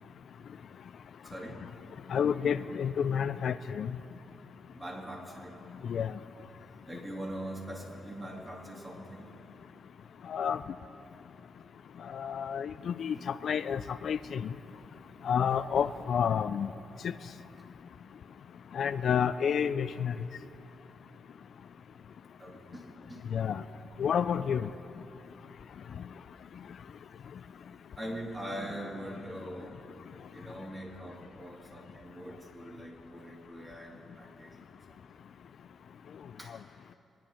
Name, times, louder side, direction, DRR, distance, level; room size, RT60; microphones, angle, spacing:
voice 1, 1.2-1.6 4.7-5.6 6.9-9.3 13.1-13.3 22.4-23.2 28.0-29.7 30.3-35.0 36.4-36.6, right 1 dB, 20° right, -1 dB, 2.8 m, -42 dB
voice 2, 2.1-3.9 5.9-6.1 10.3-10.6 12.0-14.4 15.2-16.7 17.0-17.1 18.7-20.1 23.3-23.6 24.0-24.7, left 7 dB, 65° left, 13 dB, 0.3 m, -29 dB
24.0 x 10.0 x 4.4 m, 2.9 s
cardioid pair, 90°, 0 cm